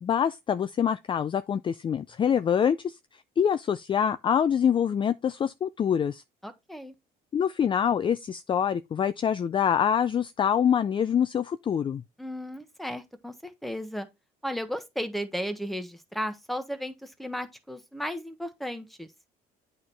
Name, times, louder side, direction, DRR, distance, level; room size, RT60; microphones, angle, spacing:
voice 1, 0.0-3.0 3.4-6.2 7.3-12.0, left 8 dB, 30° left, 0.4 m, -25 dB
voice 2, 6.4-6.9 12.2-14.1 14.4-19.1, equal, ahead, 1.2 m, -35 dB
8.6 x 4.4 x 3.3 m
cardioid pair, 110°, 17 cm